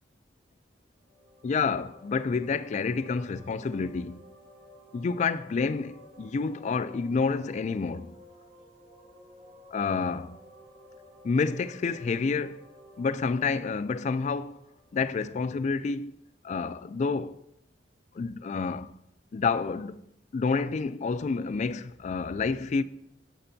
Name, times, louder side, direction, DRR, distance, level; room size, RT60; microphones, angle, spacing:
sound 1, 1.0-15.7, left 1 dB, 45° right, 3.4 m, -54 dB
voice 1, 1.4-4.2 4.9-8.2 9.7-10.4 11.2-12.6 13.0-14.6 14.9-16.1 16.4-17.4 18.2-19.0 19.3-20.0 20.3-22.8, left 4 dB, 40° left, 0.3 m, -29 dB
9.8 x 7.8 x 2.7 m
head